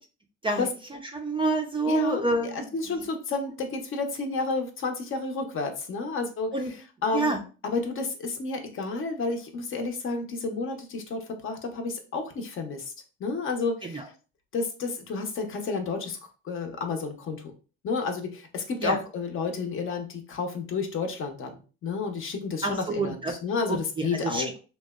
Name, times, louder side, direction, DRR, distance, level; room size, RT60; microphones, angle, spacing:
voice 1, 0.4-3.0 6.5-6.7 7.1-7.4 13.8-14.1 18.8-19.0 22.6-23.3 23.7-24.5, right 2 dB, 20° right, 3 dB, 0.4 m, -28 dB
voice 2, 1.9-2.2 2.5-6.5 7.0-7.3 7.6-12.8 13.2-14.1 14.5-16.2 16.4-17.4 17.8-21.5 21.8-24.5, left 4 dB, 45° left, 5 dB, 0.6 m, -31 dB
2.8 x 2.0 x 2.2 m, 0.35 s
supercardioid pair, 85°, 30 cm